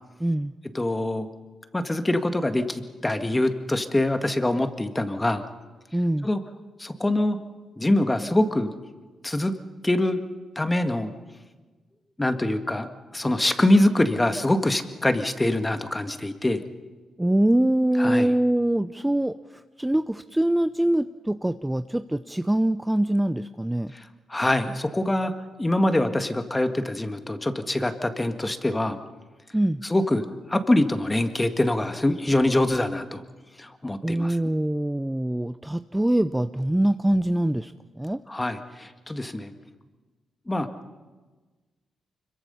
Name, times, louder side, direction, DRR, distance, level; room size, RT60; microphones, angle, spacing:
voice 1, 0.2-0.5 5.9-6.3 17.2-19.4 19.8-23.9 29.5-29.8 34.0-38.2, right 1 dB, 10° right, 11 dB, 0.6 m, -24 dB
voice 2, 0.7-1.3 1.7-5.4 6.2-6.4 6.8-7.4 7.8-8.7 9.2-9.5 9.8-10.2 10.6-11.1 12.2-16.6 18.0-18.3 23.9-24.0 24.3-25.3 25.6-29.0 29.8-33.2 33.6-34.4 38.3-39.5 40.5-40.7, left 1 dB, 20° left, 8 dB, 1.9 m, -24 dB
25.0 x 23.0 x 5.6 m, 1.3 s
supercardioid pair, 55°, 0 cm